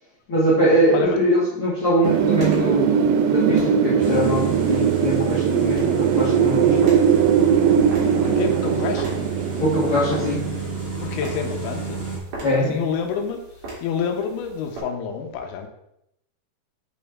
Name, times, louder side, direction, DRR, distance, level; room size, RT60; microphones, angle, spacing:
voice 1, 0.3-6.9 9.6-10.5 12.4-12.8, equal, 50° left, -9 dB, 1.7 m, -22 dB
sound 1, 2.0-14.8, right 2 dB, 50° right, 3.8 m, -41 dB
Wind, 2.0-10.8, right 7 dB, 85° right, 3.0 m, -20 dB
sound 2, 4.0-12.2, right 4 dB, 10° right, 0.7 m, -30 dB
voice 2, 8.2-9.2 11.0-12.0 12.5-13.4 13.8-15.7, left 7 dB, 85° left, 3 dB, 3.2 m, -28 dB
7.8 x 5.4 x 3.5 m, 0.79 s
omnidirectional pair, 5.3 m